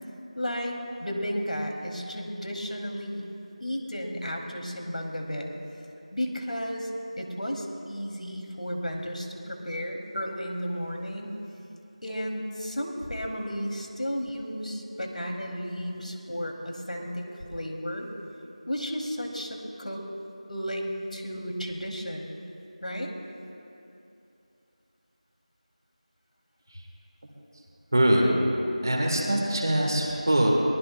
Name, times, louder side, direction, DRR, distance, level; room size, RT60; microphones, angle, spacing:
voice 1, 0.4-3.2 3.6-5.5 6.1-6.9 7.2-11.3 12.0-17.2 17.5-18.1 18.7-20.0 20.5-22.3 22.8-23.1, equal, 80° left, 1 dB, 2.5 m, -33 dB
voice 2, 27.9-28.3 28.8-30.5, right 1 dB, 35° right, -1 dB, 1.9 m, -23 dB
23.0 x 19.5 x 2.2 m, 2.8 s
figure-of-eight pair, 180°, 4 cm